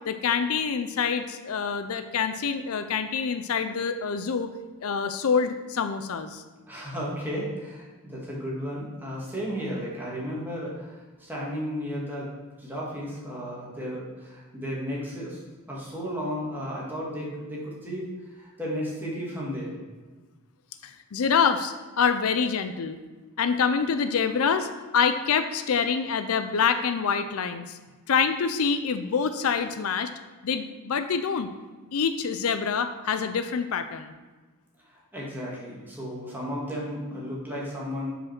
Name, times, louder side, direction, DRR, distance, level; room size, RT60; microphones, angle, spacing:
voice 1, 0.0-4.5 4.8-6.4 20.8-23.0 23.4-27.8 28.1-30.1 30.4-31.5 31.9-34.1, left 6 dB, 70° left, 9 dB, 0.5 m, -26 dB
voice 2, 6.7-12.3 12.6-15.4 15.7-19.8 34.9-38.1, equal, 10° right, -6 dB, 2.0 m, -34 dB
6.2 x 5.1 x 5.9 m, 1.3 s
head